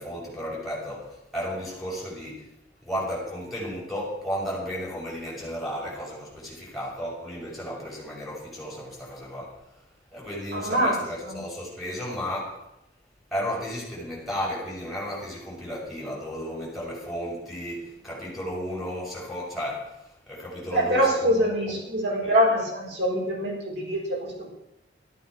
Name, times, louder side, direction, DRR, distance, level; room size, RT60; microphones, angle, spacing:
voice 1, 0.0-2.4 2.8-9.6 10.1-12.6 13.3-21.8 22.2-22.4, equal, ahead, -6 dB, 6.5 m, -34 dB
voice 2, 10.5-11.0 11.2-11.4 20.7-24.5, equal, 80° right, -2 dB, 6.0 m, -24 dB
14.0 x 12.0 x 6.2 m, 0.85 s
head